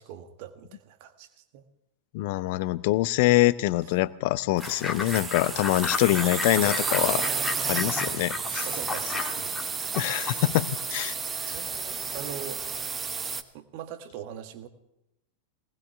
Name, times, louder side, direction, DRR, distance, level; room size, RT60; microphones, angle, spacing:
voice 1, 0.0-1.6 6.1-6.4 8.4-10.2 11.1-11.2 11.5-12.8 13.3-14.7, right 10 dB, 45° right, 9 dB, 1.7 m, -43 dB
voice 2, 2.1-7.2 7.6-8.7 9.9-11.1, left 17 dB, 50° left, 18 dB, 0.6 m, -24 dB
Fowl / Bird, 4.6-10.8, left 5 dB, 15° left, 1.6 m, -35 dB
sound 1, 4.6-13.4, right 5 dB, 20° right, 1.0 m, -32 dB
20.5 x 19.5 x 3.4 m, 0.86 s
figure-of-eight pair, 90°, 0 cm